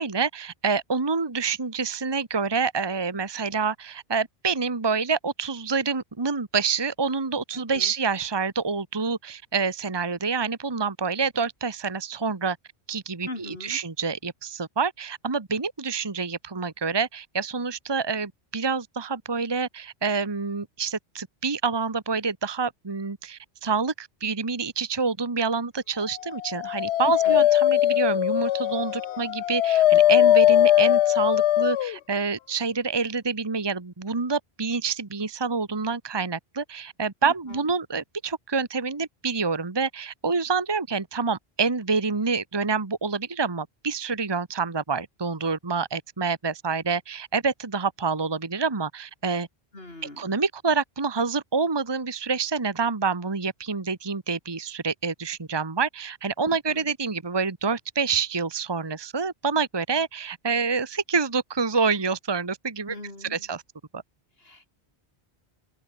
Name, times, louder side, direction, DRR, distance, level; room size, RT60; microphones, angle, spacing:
voice 1, 0.0-12.6 12.9-49.5 50.2-63.6 63.9-64.0, right 5 dB, 25° right, 1.2 m, -27 dB
voice 2, 13.3-13.8 27.2-27.5 37.2-37.6 49.7-50.3 56.5-56.8 62.9-63.4 64.4-64.8, left 2 dB, 65° left, 5.0 m, -41 dB
Dog, 26.3-31.9, left 13 dB, 90° left, 0.9 m, -20 dB
open air
omnidirectional pair, 1.1 m